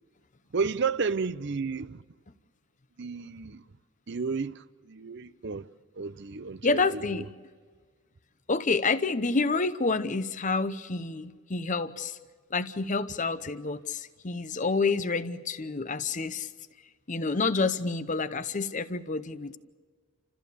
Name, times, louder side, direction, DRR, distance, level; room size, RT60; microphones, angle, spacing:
voice 1, 0.5-2.0 3.0-3.6 4.1-5.7 6.0-7.3, right 5 dB, 50° right, 0.6 m, -32 dB
voice 2, 6.6-7.2 8.5-12.2 12.5-16.5 17.1-19.6, left 4 dB, 35° left, 0.8 m, -28 dB
30.0 x 14.5 x 6.9 m
head